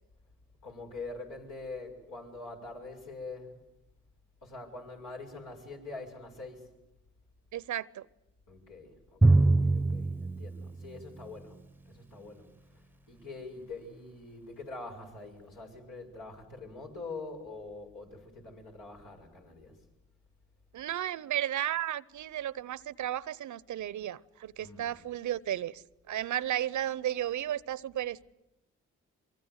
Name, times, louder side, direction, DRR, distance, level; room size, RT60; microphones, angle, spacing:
voice 1, 0.6-3.6 4.4-6.7 8.5-11.6 11.9-19.8 24.6-24.9, left 3 dB, 80° left, 0 dB, 7.0 m, -44 dB
voice 2, 7.5-8.1 20.7-28.3, right 11 dB, 70° right, 21 dB, 0.8 m, -34 dB
Drum, 9.2-11.6, right 2 dB, 5° right, 0.9 m, -25 dB
25.0 x 24.0 x 8.1 m, 0.92 s
supercardioid pair, 50°, 31 cm